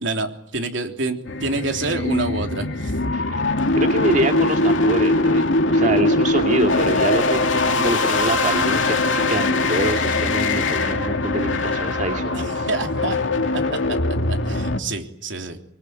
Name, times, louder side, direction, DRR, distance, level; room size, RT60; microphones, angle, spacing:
voice 1, 0.0-3.0 12.3-13.2 13.7-13.8 14.3-15.6, right 3 dB, 70° right, 5 dB, 3.4 m, -27 dB
sound 1, 1.2-14.8, left 2 dB, 75° left, 2.5 m, -21 dB
voice 2, 3.7-12.7, right 1 dB, 40° right, 4 dB, 2.3 m, -25 dB
25.0 x 23.5 x 9.2 m, 0.65 s
head